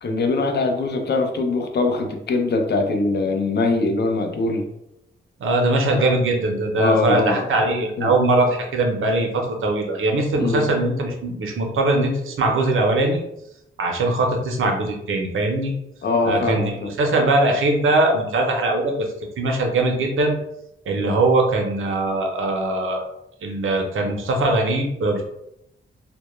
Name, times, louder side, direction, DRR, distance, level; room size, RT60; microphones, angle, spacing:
voice 1, 0.0-4.7 5.9-6.0 6.8-7.4 8.0-8.1 10.4-10.7 16.0-16.9 20.9-21.2, left 3 dB, 55° left, 4 dB, 0.4 m, -22 dB
voice 2, 5.4-13.2 13.8-15.7 16.2-19.1 19.4-20.4 20.9-23.0 23.4-25.2, right 2 dB, 85° right, 2 dB, 0.6 m, -21 dB
2.1 x 2.0 x 3.0 m, 0.81 s
wide cardioid pair, 105°, 20 cm